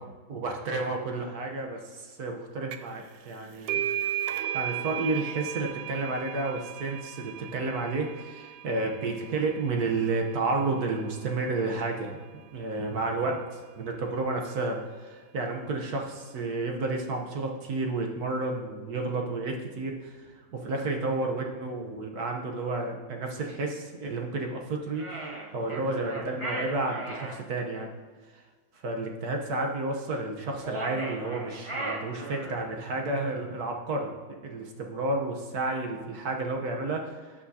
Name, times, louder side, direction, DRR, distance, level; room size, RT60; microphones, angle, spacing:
voice 1, 0.3-3.8 4.5-12.2 12.5-13.4 13.8-25.0 25.5-27.9 28.3-28.4 28.8-37.3, right 3 dB, 55° right, 2 dB, 1.3 m, -31 dB
sound 1, 2.7-3.0 3.3-10.6, right 11 dB, 80° right, 1.4 m, -35 dB
sound 2, 24.9-27.4 30.6-32.7, right 2 dB, 20° right, 0.8 m, -36 dB
17.5 x 5.9 x 2.8 m, 1.5 s
omnidirectional pair, 2.2 m